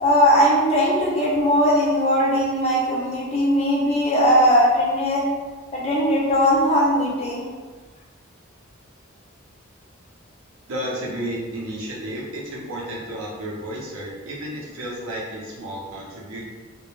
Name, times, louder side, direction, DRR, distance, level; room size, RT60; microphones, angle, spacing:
voice 1, 0.0-5.3 5.7-7.4, equal, 30° left, -4 dB, 0.4 m, -19 dB
voice 2, 10.7-16.4, right 1 dB, 70° right, -4 dB, 0.6 m, -32 dB
2.1 x 2.1 x 3.0 m, 1.4 s
head